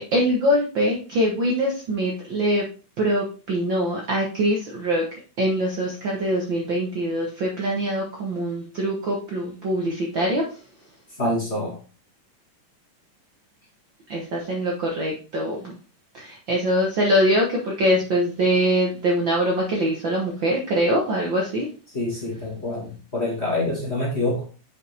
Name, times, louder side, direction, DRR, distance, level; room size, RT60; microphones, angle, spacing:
voice 1, 0.0-2.6 3.0-10.6 14.1-15.8 16.1-21.7, equal, 85° right, -1 dB, 1.0 m, -23 dB
voice 2, 11.2-11.8 21.9-24.5, left 1 dB, 25° left, -4 dB, 1.7 m, -26 dB
8.1 x 5.1 x 3.3 m, 0.36 s
omnidirectional pair, 3.9 m